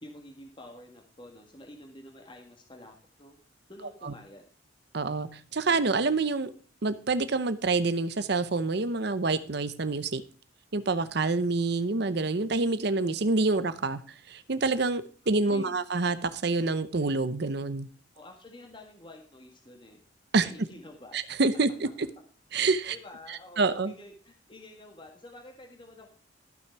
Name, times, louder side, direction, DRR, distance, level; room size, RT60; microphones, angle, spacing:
voice 1, 0.0-3.4 3.7-4.4 15.4-15.7 18.1-20.0 20.3-21.2 22.9-26.1, left 1 dB, 25° left, 2 dB, 1.7 m, -49 dB
voice 2, 4.9-6.5 6.8-10.2 10.7-14.0 14.3-17.9 20.3-20.5 21.1-21.9 22.5-23.0 23.3-23.9, right 3 dB, 55° right, 13 dB, 0.7 m, -27 dB
14.0 x 6.4 x 4.6 m, 0.42 s
head